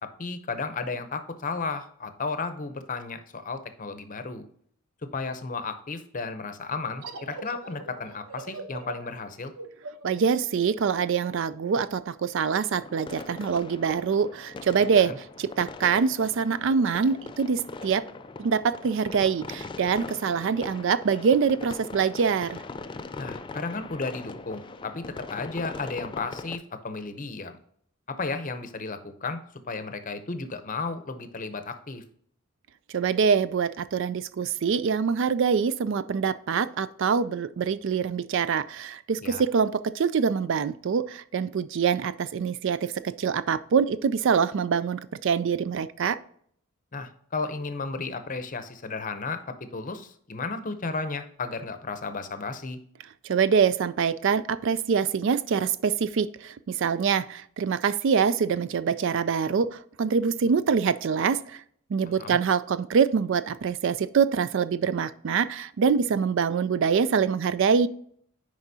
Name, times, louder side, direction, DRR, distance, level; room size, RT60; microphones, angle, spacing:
voice 1, 0.0-4.5 5.0-9.5 15.0-15.2 23.2-27.6 28.1-29.4 29.7-32.0 39.2-39.4 46.9-52.8 62.2-62.4, left 4 dB, 35° left, 9 dB, 0.7 m, -34 dB
sound 1, 7.0-12.3, right 3 dB, 80° right, 0.9 m, -42 dB
voice 2, 10.0-18.0 18.4-22.6 32.9-46.2 53.2-61.6 61.9-67.9, right 6 dB, 55° right, 15 dB, 0.4 m, -25 dB
sound 2, 12.7-26.6, left 3 dB, 20° left, 0.3 m, -41 dB
9.6 x 4.9 x 2.7 m, 0.63 s
head